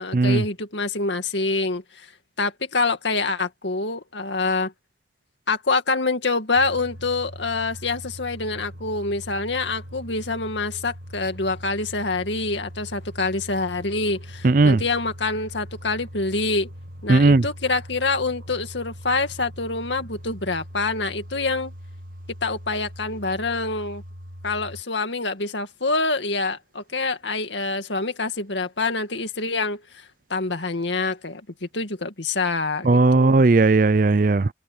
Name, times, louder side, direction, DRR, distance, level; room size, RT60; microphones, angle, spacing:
voice 1, 0.0-2.1 2.4-4.7 5.5-16.7 17.0-21.7 22.4-24.0 24.4-30.0 30.3-33.4, left 3 dB, 80° left, 2.2 m, -26 dB
sound 1, 6.5-24.8, equal, 90° right, 2.6 m, -41 dB
voice 2, 14.4-14.8 17.1-17.5 32.8-34.5, right 3 dB, 45° right, 0.5 m, -16 dB
head